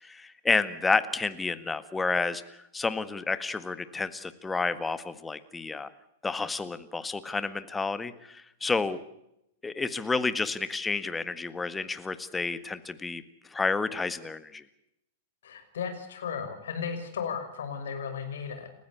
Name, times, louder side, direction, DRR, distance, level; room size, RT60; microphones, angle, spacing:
voice 1, 0.0-2.4 2.7-5.9 6.2-9.0 9.6-13.2 13.5-14.6, left 4 dB, 10° left, 13 dB, 1.7 m, -30 dB
voice 2, 15.4-18.7, left 6 dB, 65° left, 8 dB, 6.0 m, -35 dB
30.0 x 15.5 x 8.2 m, 0.82 s
figure-of-eight pair, 100°, 0 cm